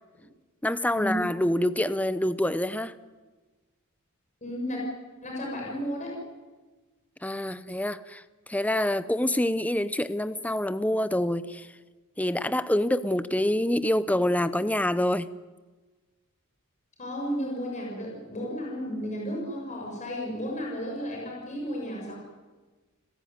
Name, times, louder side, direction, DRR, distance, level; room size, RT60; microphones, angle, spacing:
voice 1, 0.6-2.9 7.2-8.2 8.5-11.7 12.2-15.3, left 1 dB, 5° left, 14 dB, 0.8 m, -26 dB
voice 2, 4.4-4.8 5.2-6.2 17.0-22.1, equal, 35° left, -2 dB, 7.1 m, -33 dB
29.5 x 16.5 x 9.5 m, 1.3 s
head